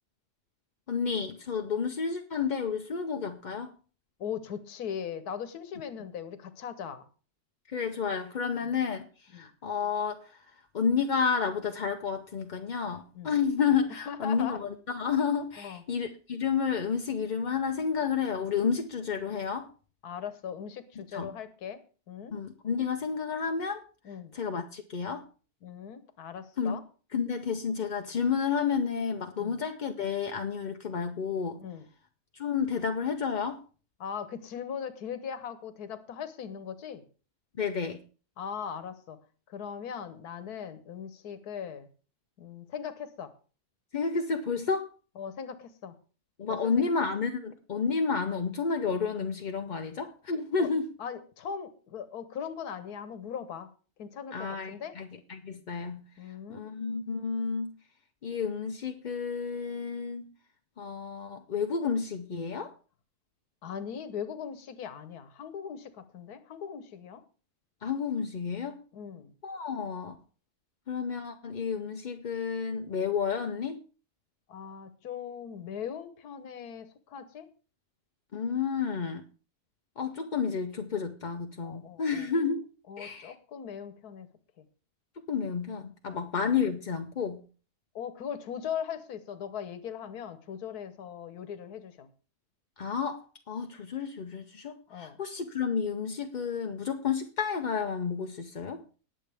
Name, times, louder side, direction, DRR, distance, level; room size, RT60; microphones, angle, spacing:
voice 1, 0.9-3.7 7.7-10.4 10.7-19.7 21.1-21.3 22.3-23.8 24.3-25.2 26.6-26.8 27.1-31.6 32.3-33.6 37.6-38.0 43.9-44.9 46.4-50.9 54.3-56.0 56.5-57.7 58.2-60.2 60.8-62.7 67.8-68.8 69.4-70.1 70.9-73.8 78.3-79.2 80.0-82.7 83.0-83.3 85.3-87.4 92.8-98.8, left 6 dB, 45° left, 5 dB, 0.6 m, -31 dB
voice 2, 4.2-7.0 8.6-8.7 9.3-9.5 13.1-13.3 14.1-14.6 15.6-15.8 20.0-22.4 24.0-24.3 25.6-26.8 29.4-29.6 31.6-31.9 34.0-37.0 38.4-39.2 39.5-41.9 42.4-43.3 45.2-45.9 46.5-46.9 50.6-50.7 51.0-53.7 54.0-54.9 56.2-56.7 63.6-67.2 68.9-69.3 74.5-77.5 81.6-82.3 82.9-84.3 84.6-84.7 86.0-86.3 87.9-92.1 94.9-95.2, left 7 dB, 80° left, 12 dB, 1.6 m, -39 dB
19.5 x 7.5 x 3.4 m, 0.37 s
omnidirectional pair, 1.6 m